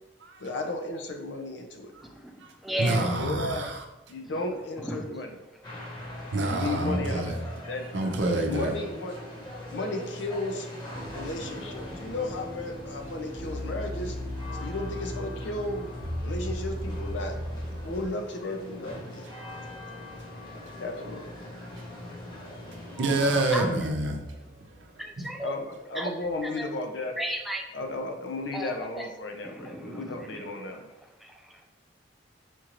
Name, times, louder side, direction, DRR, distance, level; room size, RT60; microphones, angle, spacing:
voice 1, 0.4-1.9 2.7-3.7 4.1-5.4 6.5-7.9 8.3-9.2 9.7-10.7 11.1-14.2 14.5-15.9 16.2-17.4 17.7-19.3 19.6-19.8 20.8-21.3 25.4-27.2 27.7-30.9, left 2 dB, 80° left, 4 dB, 0.5 m, -34 dB
voice 2, 2.0-3.0 4.2-5.3 22.9-23.7 25.0-26.7 27.2-27.6 28.5-29.1 29.4-30.8 31.2-31.6, equal, ahead, 1 dB, 0.4 m, -36 dB
voice 3, 2.8-3.8 5.7-7.4 7.9-8.7 11.1-11.2 19.4-19.5 19.7-19.9 20.2-20.3 21.6-21.8 22.3-25.3, right 2 dB, 85° right, 3 dB, 0.6 m, -29 dB
sound 1, 5.6-23.4, left 1 dB, 25° left, 1.0 m, -42 dB
sound 2, 10.9-18.0, equal, 30° right, 1.0 m, -36 dB
4.3 x 2.5 x 3.0 m, 0.96 s
head